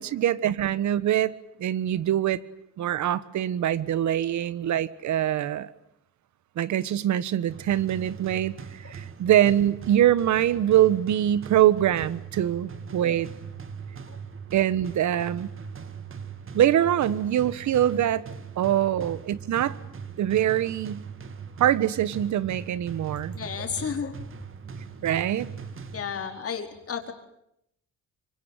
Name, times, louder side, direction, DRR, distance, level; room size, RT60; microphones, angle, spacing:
voice 1, 0.0-2.4 2.8-5.7 6.5-13.3 14.5-15.5 16.5-18.3 18.6-19.8 20.2-21.0 21.6-23.3 25.0-25.5, right 11 dB, 70° right, 17 dB, 1.4 m, -24 dB
sound 1, 7.5-26.5, right 6 dB, 45° right, 2.3 m, -40 dB
voice 2, 23.3-24.2 25.9-27.1, left 7 dB, 50° left, 5 dB, 4.7 m, -33 dB
25.5 x 24.0 x 9.2 m, 0.76 s
cardioid pair, 90°, 30 cm